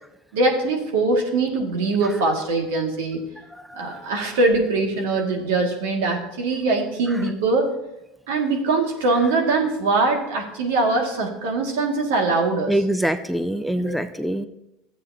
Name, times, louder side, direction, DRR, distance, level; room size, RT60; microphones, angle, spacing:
voice 1, 0.3-3.2 3.7-7.7 8.3-12.8 13.7-13.9, right 3 dB, 85° right, 1 dB, 2.0 m, -22 dB
voice 2, 3.7-4.0 12.7-14.5, right 1 dB, ahead, 10 dB, 0.5 m, -24 dB
13.5 x 8.2 x 2.8 m, 0.88 s
supercardioid pair, 105°, 0 cm